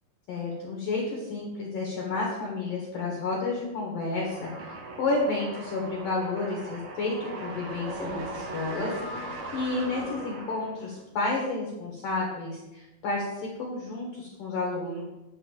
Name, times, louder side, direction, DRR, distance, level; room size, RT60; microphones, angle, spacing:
voice 1, 0.3-15.0, left 3 dB, 60° left, -2 dB, 2.3 m, -31 dB
sound 1, 4.2-11.0, right 1 dB, 85° right, 1.7 m, -39 dB
11.0 x 4.0 x 7.3 m, 1.0 s
omnidirectional pair, 5.8 m